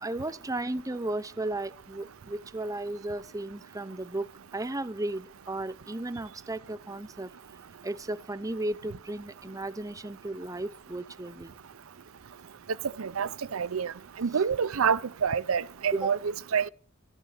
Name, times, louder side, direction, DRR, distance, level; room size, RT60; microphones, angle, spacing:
voice 1, 0.0-7.3 7.8-11.5 15.9-16.2, right 2 dB, 15° right, 0.8 m, -35 dB
voice 2, 13.0-13.9 14.2-16.7, right 6 dB, 90° right, 0.6 m, -27 dB
13.5 x 12.0 x 6.6 m
head